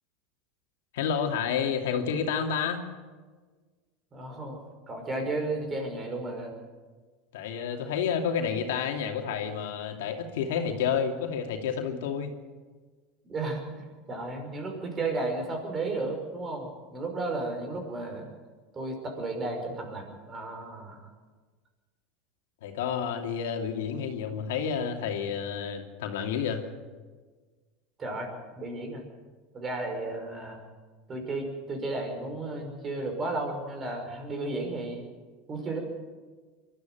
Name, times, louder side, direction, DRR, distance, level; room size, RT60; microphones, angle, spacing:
voice 1, 0.9-2.8 7.3-12.3 22.6-26.7, left 7 dB, 85° left, 3 dB, 2.7 m, -30 dB
voice 2, 4.1-4.6 4.9-6.5 13.2-18.3 18.7-21.1 28.0-28.3 28.6-29.0 29.5-30.6 31.1-35.0 35.5-35.8, right 2 dB, 25° right, 3 dB, 5.7 m, -33 dB
22.5 x 13.0 x 9.3 m, 1.4 s
supercardioid pair, 125°, 0 cm